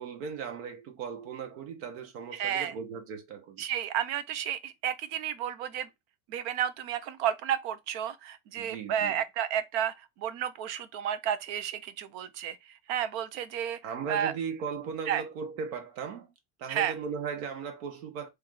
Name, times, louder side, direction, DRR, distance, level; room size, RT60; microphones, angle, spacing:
voice 1, 0.0-3.7 8.6-9.2 13.8-16.3 16.6-18.3, right 6 dB, 70° right, 1.5 m, -37 dB
voice 2, 2.3-2.7 3.6-5.9 6.3-12.6 12.9-13.8 14.1-14.3 15.1-15.2 16.7-16.9, right 9 dB, 55° right, 0.7 m, -31 dB
3.4 x 3.3 x 3.8 m
cardioid pair, 175°, 42 cm